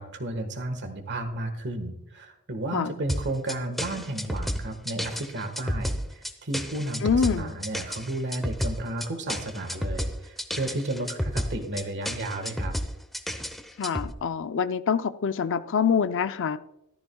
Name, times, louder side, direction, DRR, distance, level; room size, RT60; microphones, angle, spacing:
voice 1, 0.0-12.8, right 1 dB, 55° right, 7 dB, 1.6 m, -33 dB
sound 1, 3.1-14.1, equal, ahead, 0.8 m, -31 dB
voice 2, 7.0-7.5 13.8-16.6, left 6 dB, 60° left, 12 dB, 0.5 m, -25 dB
14.0 x 13.5 x 2.3 m, 0.83 s
head